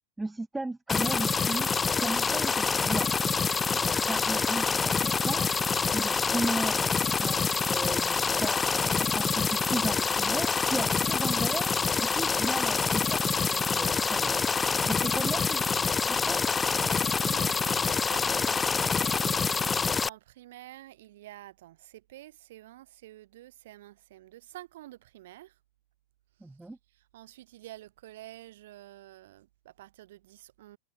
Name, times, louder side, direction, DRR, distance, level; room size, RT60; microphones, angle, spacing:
voice 1, 0.2-1.7 2.0-3.1 3.7-5.5 5.9-11.7 12.0-13.2 13.5-14.5 14.9-15.7 16.1-16.4 26.4-26.8, right 2 dB, 5° right, 0.6 m, -35 dB
sound 1, 0.9-20.1, left 5 dB, 15° left, 1.0 m, -26 dB
voice 2, 16.7-25.6 26.9-30.8, right 15 dB, 55° right, 3.0 m, -48 dB
figure-of-eight pair, 90°, 0 cm